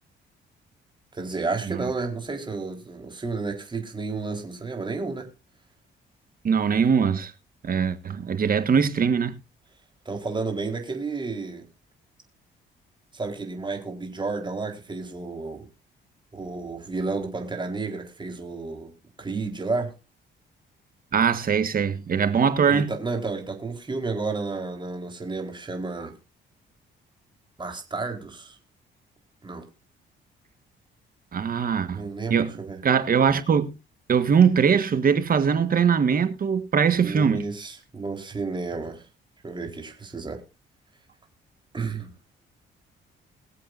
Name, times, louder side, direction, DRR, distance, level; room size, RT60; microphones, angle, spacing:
voice 1, 1.1-5.3 10.1-11.7 13.1-15.7 16.3-18.9 19.2-19.9 22.7-26.1 27.6-28.6 29.4-29.6 31.9-32.8 37.0-39.0 39.4-40.4 41.7-42.1, right 3 dB, 25° right, 4.0 m, -31 dB
voice 2, 6.4-7.3 7.6-9.3 21.1-22.9 31.3-32.0 32.3-32.6 32.8-33.7 34.1-37.4, right 6 dB, 45° right, 1.6 m, -21 dB
22.5 x 7.6 x 2.6 m
cardioid pair, 90°, 20 cm